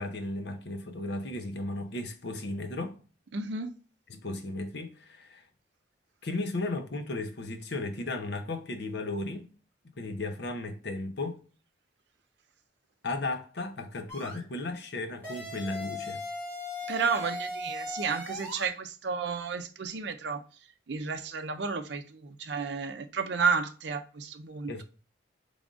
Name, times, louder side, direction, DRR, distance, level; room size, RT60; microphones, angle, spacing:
voice 1, 0.0-3.0 4.1-5.5 6.2-9.5 10.0-11.4 13.0-16.2 24.7-24.8, left 2 dB, 60° left, 0.6 m, -35 dB
voice 2, 3.3-3.7 16.9-20.4 20.9-24.8, right 5 dB, 70° right, 0.5 m, -32 dB
sound 1, 14.1-14.4 15.2-18.7, left 2 dB, 10° left, 1.8 m, -38 dB
3.8 x 3.4 x 2.4 m
head